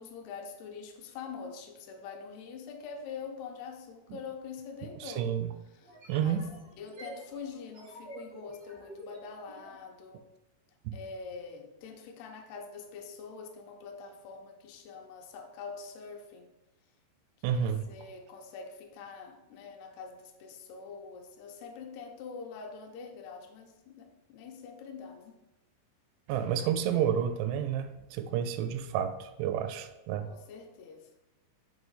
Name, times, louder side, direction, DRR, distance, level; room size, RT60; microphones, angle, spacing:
voice 1, 0.0-5.3 5.7-6.4 6.8-10.3 10.9-16.5 17.5-25.4 30.3-31.1, left 5 dB, 80° left, 3 dB, 2.4 m, -45 dB
voice 2, 5.0-5.5 6.1-6.5 17.4-17.9 26.3-30.3, right 9 dB, 85° right, 9 dB, 2.8 m, -30 dB
sound 1, 5.8-9.8, right 1 dB, 65° right, 0.9 m, -48 dB
7.3 x 3.0 x 5.5 m, 0.97 s
omnidirectional pair, 5.4 m